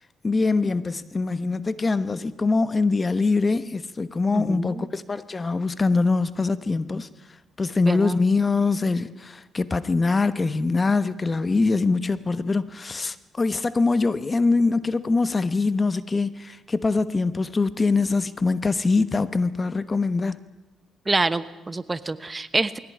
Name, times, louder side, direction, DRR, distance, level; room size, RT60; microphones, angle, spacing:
voice 1, 0.2-7.1 7.6-20.4, left 3 dB, 30° left, 1.1 m, -23 dB
voice 2, 4.3-4.9 7.9-8.1 21.1-22.8, right 3 dB, 20° right, 1.0 m, -26 dB
21.5 x 17.0 x 9.9 m
cardioid pair, 90°, 0 cm